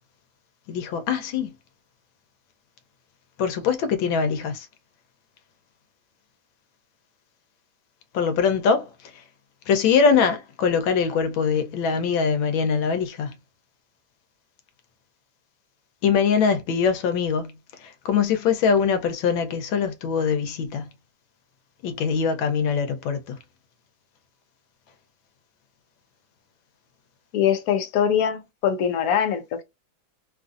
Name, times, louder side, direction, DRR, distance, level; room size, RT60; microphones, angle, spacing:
voice 1, 0.7-1.5 3.4-4.7 8.1-8.9 9.7-13.3 16.0-17.5 18.0-20.9 21.8-23.4, left 6 dB, 80° left, 1.5 m, -22 dB
voice 2, 27.3-29.6, left 8 dB, 65° left, 0.9 m, -23 dB
3.5 x 2.5 x 2.4 m
omnidirectional pair, 2.1 m